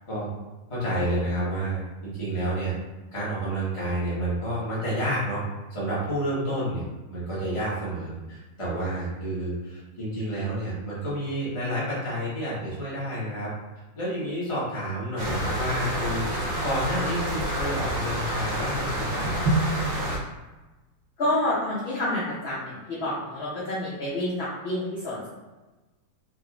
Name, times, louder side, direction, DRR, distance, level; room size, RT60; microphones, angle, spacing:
voice 1, 0.7-2.7 3.1-5.4 5.7-6.8 7.1-13.5 13.9-16.3 16.6-19.5, right 1 dB, 20° left, -9 dB, 1.1 m, -29 dB
sound 1, 15.2-20.2, right 1 dB, 55° right, 0.8 m, -27 dB
voice 2, 21.2-25.3, left 1 dB, 50° left, -9 dB, 0.8 m, -28 dB
3.9 x 2.7 x 2.4 m, 1.2 s
omnidirectional pair, 1.7 m